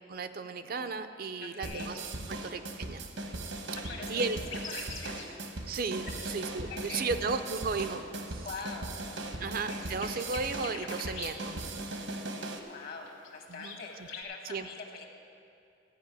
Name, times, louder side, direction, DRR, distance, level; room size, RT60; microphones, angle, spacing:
voice 1, 0.1-2.0 2.3-3.0 4.1-4.4 5.7-8.5 9.4-11.6 13.5-13.8 14.4-14.7, right 4 dB, 50° right, 9 dB, 0.5 m, -34 dB
voice 2, 1.4-1.9 3.9-4.2 4.7-5.4 6.0-6.4 6.7-7.1 8.4-9.3 12.7-15.1, left 4 dB, 50° left, 2 dB, 1.4 m, -44 dB
sound 1, 1.6-12.6, right 2 dB, 75° right, 1.1 m, -39 dB
sound 2, 3.2-8.1 8.6-14.2, left 4 dB, 80° left, 1.4 m, -47 dB
14.0 x 5.4 x 9.0 m, 2.6 s
head